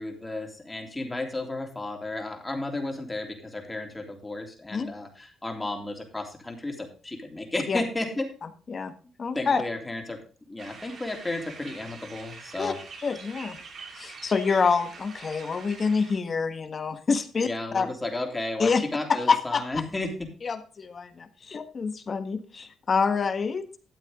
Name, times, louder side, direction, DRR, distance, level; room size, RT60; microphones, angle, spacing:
voice 1, 0.0-8.3 9.3-10.2 10.5-12.8 17.4-20.3, left 2 dB, 15° left, 3 dB, 3.2 m, -33 dB
voice 2, 9.2-9.6 12.6-12.7 13.0-13.6 14.0-17.5 17.7-17.9 18.6-18.8 19.3-19.6 20.4-23.6, left 5 dB, 40° left, 9 dB, 1.5 m, -26 dB
sound 1, 10.6-16.2, right 4 dB, 55° right, 2.7 m, -45 dB
13.0 x 8.2 x 3.7 m, 0.37 s
cardioid pair, 90°, 0 cm